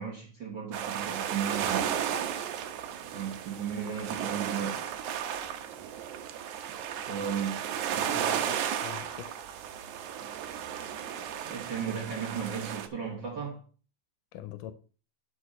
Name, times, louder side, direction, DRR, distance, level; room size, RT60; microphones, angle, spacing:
voice 1, 0.0-1.9 3.1-4.9 7.1-7.6 11.4-13.6, right 7 dB, 50° right, 1.5 m, -35 dB
sound 1, 0.7-12.9, right 9 dB, 75° right, 2.1 m, -34 dB
voice 2, 7.9-9.3 14.3-14.7, left 12 dB, 85° left, 2.3 m, -44 dB
11.5 x 5.2 x 4.2 m
omnidirectional pair, 3.7 m